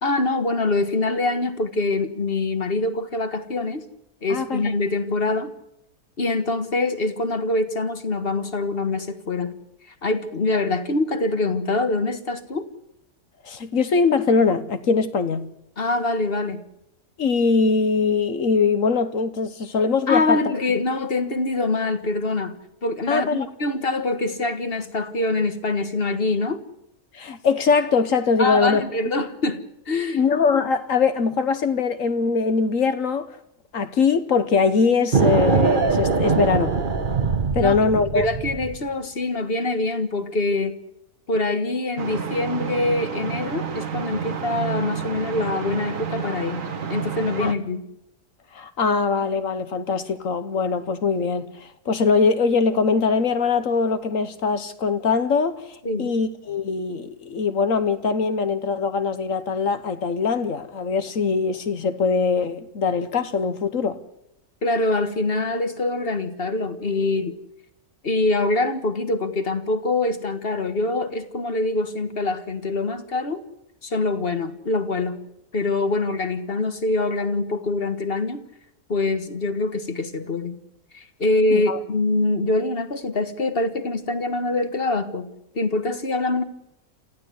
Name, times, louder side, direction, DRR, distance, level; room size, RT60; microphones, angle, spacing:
voice 1, 0.0-3.9 4.2-5.5 6.2-9.5 10.0-12.7 15.8-16.6 20.1-22.5 22.8-26.6 28.4-30.2 37.6-40.8 41.3-46.6 46.9-47.8 55.8-56.1 64.6-67.4 68.0-73.4 73.8-75.2 75.5-78.4 78.9-80.6 80.9-86.4, left 2 dB, 40° left, 1.6 m, -24 dB
voice 2, 4.3-4.7 13.4-15.5 17.2-20.4 23.1-23.5 27.1-28.8 30.1-33.3 33.7-36.8 37.5-38.3 47.4-47.6 48.5-64.0 81.5-81.8, left 5 dB, 60° left, 1.4 m, -22 dB
sound 1, 35.1-38.8, right 5 dB, 35° right, 1.2 m, -22 dB
sound 2, 42.0-47.5, right 6 dB, 60° right, 1.9 m, -30 dB
27.5 x 15.0 x 8.2 m
omnidirectional pair, 1.6 m